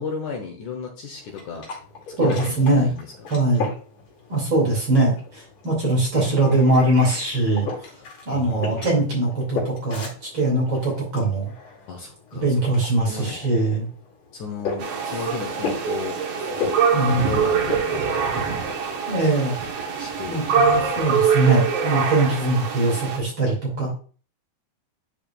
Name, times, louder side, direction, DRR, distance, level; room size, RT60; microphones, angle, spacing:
voice 1, 0.0-1.7 2.2-3.1 8.3-8.9 11.9-12.5 12.8-13.4 14.3-16.2 17.3-18.0 20.0-20.7, left 5 dB, 65° left, 1 dB, 2.2 m, -34 dB
sound 1, 1.1-19.0, left 4 dB, 50° left, 3.1 m, -36 dB
voice 2, 2.2-2.9 3.3-3.7 4.3-8.0 8.3-11.5 12.3-13.9 16.9-17.3 19.1-19.6 20.3-23.9, right 2 dB, 35° right, -3 dB, 2.6 m, -21 dB
sound 2, 14.8-23.2, right 6 dB, 65° right, 1.7 m, -24 dB
11.0 x 4.9 x 2.3 m, 0.40 s
omnidirectional pair, 4.3 m